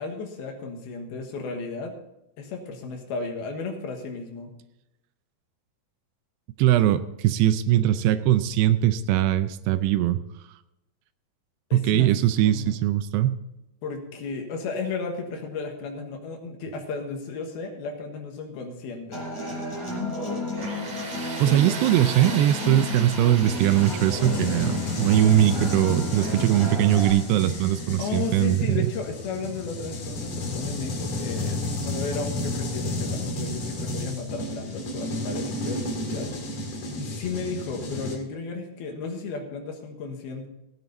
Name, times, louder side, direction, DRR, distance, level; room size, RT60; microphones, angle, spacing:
voice 1, 0.0-2.0 2.4-4.6 11.7-12.1 12.4-12.8 13.8-19.3 21.4-21.6 28.0-36.4 37.0-40.5, left 4 dB, 70° left, 3 dB, 3.1 m, -34 dB
voice 2, 6.6-10.2 11.7-13.4 21.4-28.9, right 13 dB, 80° right, 12 dB, 2.6 m, -21 dB
Human voice / Acoustic guitar, 19.1-27.1, left 2 dB, 5° left, 5.6 m, -32 dB
Tools, 20.6-29.3, right 3 dB, 45° right, 2.9 m, -39 dB
sound 1, 23.5-38.2, left 1 dB, 50° left, 2.9 m, -32 dB
17.0 x 9.1 x 4.0 m, 0.90 s
omnidirectional pair, 4.9 m